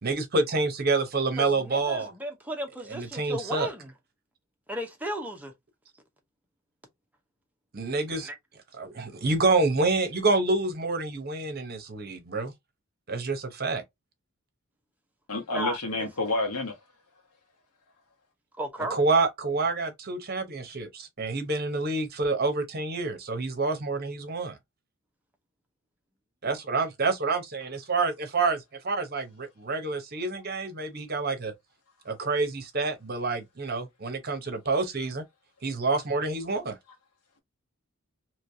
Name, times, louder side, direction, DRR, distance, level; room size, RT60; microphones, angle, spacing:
voice 1, 0.0-2.1 2.9-3.7 7.7-8.3 8.8-12.5 13.1-13.8 18.9-24.6 26.4-31.5 32.1-35.2 35.6-36.8, right 3 dB, 45° right, 0.9 m, -28 dB
voice 2, 1.4-3.9 4.7-5.5 8.1-8.4 15.5-16.1 18.6-19.0, right 1 dB, 5° right, 0.8 m, -35 dB
voice 3, 15.3-16.8, left 2 dB, 90° left, 1.2 m, -29 dB
3.2 x 3.0 x 2.6 m
head